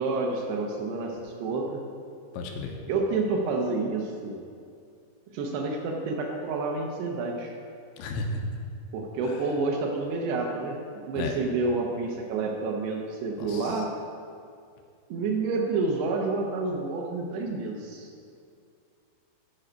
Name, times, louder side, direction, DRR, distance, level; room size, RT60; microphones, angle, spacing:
voice 1, 0.0-1.8 2.9-4.4 5.3-7.6 8.9-13.9 15.1-18.1, right 3 dB, 75° right, 0 dB, 2.7 m, -29 dB
voice 2, 2.3-2.8 8.0-8.4 11.2-11.4 13.4-13.7, left 3 dB, 85° left, 2 dB, 3.1 m, -33 dB
12.0 x 5.5 x 5.1 m, 2.3 s
omnidirectional pair, 5.3 m